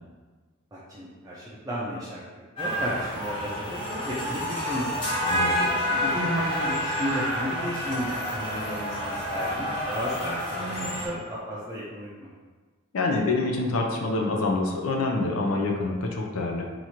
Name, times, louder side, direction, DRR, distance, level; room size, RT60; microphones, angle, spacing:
voice 1, 0.7-2.2 2.6-4.9 5.6-12.3, equal, 15° right, -7 dB, 0.5 m, -33 dB
sound 1, 2.6-11.1, equal, 25° left, 1.0 m, -29 dB
voice 2, 12.9-16.7, left 3 dB, 75° left, 0 dB, 0.5 m, -26 dB
3.0 x 2.4 x 4.2 m, 1.4 s
head